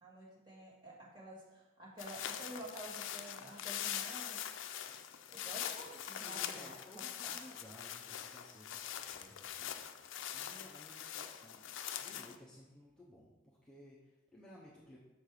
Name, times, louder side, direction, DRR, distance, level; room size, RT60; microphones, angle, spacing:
voice 1, 0.0-4.4 5.3-6.8 7.2-7.4, right 1 dB, 25° right, -5 dB, 1.9 m, -50 dB
sound 1, 2.0-12.4, left 10 dB, 80° left, 0.4 m, -43 dB
voice 2, 5.9-10.0 10.3-15.0, equal, 5° left, -7 dB, 0.8 m, -57 dB
6.5 x 4.4 x 4.8 m, 1.1 s
head